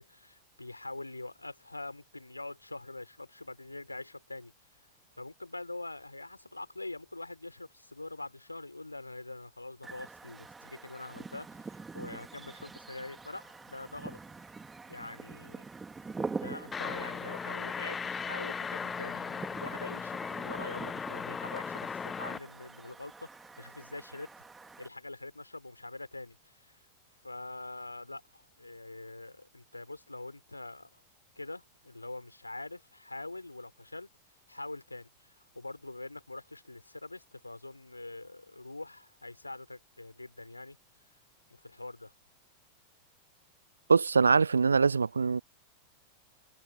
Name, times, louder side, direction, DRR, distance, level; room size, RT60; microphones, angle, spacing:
voice 1, 0.0-4.5 5.2-14.2 14.9-15.6 16.3-24.3 24.8-26.7 27.2-31.0 31.4-34.1 34.5-40.8 41.5-42.1, left 2 dB, 85° left, 4.4 m, -44 dB
sound 1, 9.8-24.9, right 4 dB, 10° right, 2.6 m, -45 dB
sound 2, 16.7-22.4, left 6 dB, 20° left, 1.4 m, -37 dB
voice 2, 43.9-45.4, right 5 dB, 75° right, 0.6 m, -23 dB
figure-of-eight pair, 90°, 0 cm